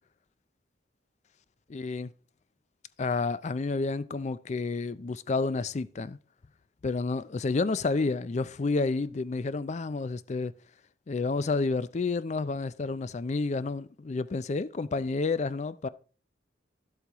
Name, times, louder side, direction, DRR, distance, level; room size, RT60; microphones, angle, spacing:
voice 1, 1.7-2.1 3.0-6.2 6.8-10.5 11.1-15.9, left 3 dB, 40° left, 0.4 m, -30 dB
11.0 x 8.2 x 3.0 m
head